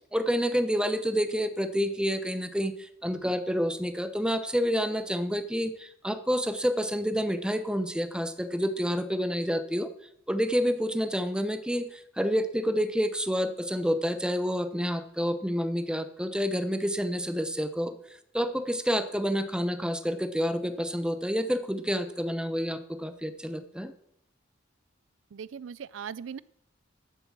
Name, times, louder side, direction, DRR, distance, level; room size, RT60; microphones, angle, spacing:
voice 1, 0.1-9.9 10.3-18.0 18.3-23.9, equal, 5° right, 10 dB, 0.9 m, -28 dB
voice 2, 25.3-26.4, right 7 dB, 75° right, 19 dB, 0.4 m, -39 dB
13.5 x 7.8 x 7.4 m, 0.74 s
head